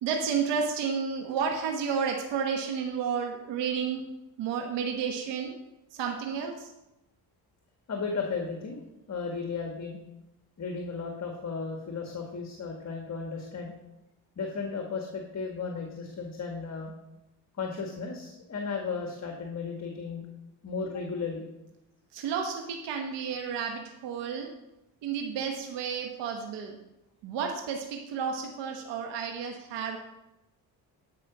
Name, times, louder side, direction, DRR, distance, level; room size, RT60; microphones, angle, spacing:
voice 1, 0.0-4.0 4.4-5.5 5.9-6.7 22.1-24.5 25.0-26.8 27.2-30.0, right 6 dB, 90° right, 3 dB, 1.2 m, -31 dB
voice 2, 7.9-8.8 9.1-10.0 10.6-13.7 14.4-16.9 17.6-20.3 20.6-21.4, left 4 dB, 40° left, 2 dB, 1.6 m, -35 dB
12.5 x 5.0 x 5.9 m, 0.93 s
cardioid pair, 90°, 41 cm